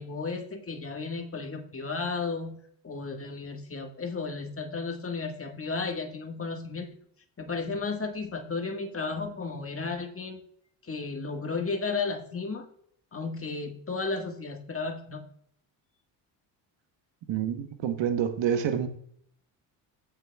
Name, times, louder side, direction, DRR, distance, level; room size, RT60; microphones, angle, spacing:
voice 1, 0.0-2.6 2.8-6.9 7.4-10.4 10.8-12.7 13.1-15.2, left 4 dB, 25° left, 1.6 m, -33 dB
voice 2, 17.3-18.9, right 8 dB, 60° right, 1.1 m, -27 dB
16.0 x 5.8 x 2.3 m
supercardioid pair, 65°, 49 cm